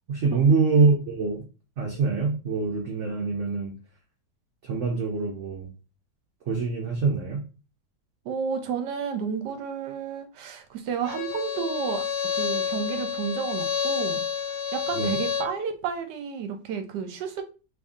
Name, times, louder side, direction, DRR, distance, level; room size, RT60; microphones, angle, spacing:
voice 1, 0.1-1.4 1.8-3.7 4.6-5.7 6.5-7.4 14.9-15.2, right 4 dB, 60° right, 0.8 m, -24 dB
voice 2, 8.2-12.0 12.3-14.2 14.7-17.4, right 7 dB, 75° right, 1.2 m, -31 dB
Bowed string instrument, 11.0-15.6, left 6 dB, 80° left, 1.4 m, -29 dB
3.2 x 2.6 x 3.6 m
omnidirectional pair, 2.0 m